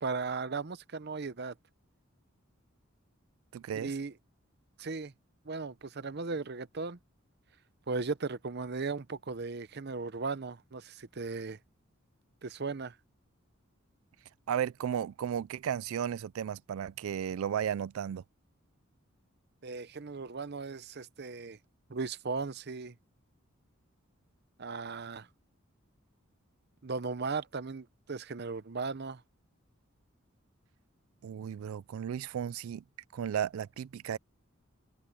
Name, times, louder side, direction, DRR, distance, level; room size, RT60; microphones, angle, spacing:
voice 1, 0.0-1.5 3.7-4.1 4.8-5.1 5.5-7.0 7.9-11.6 12.4-13.0 19.6-21.6 21.9-22.9 24.6-25.3 26.8-29.2, right 4 dB, 50° right, 0.7 m, -37 dB
voice 2, 3.5-3.9 14.5-18.2 31.2-32.8 33.1-34.2, right 9 dB, 80° right, 0.3 m, -34 dB
head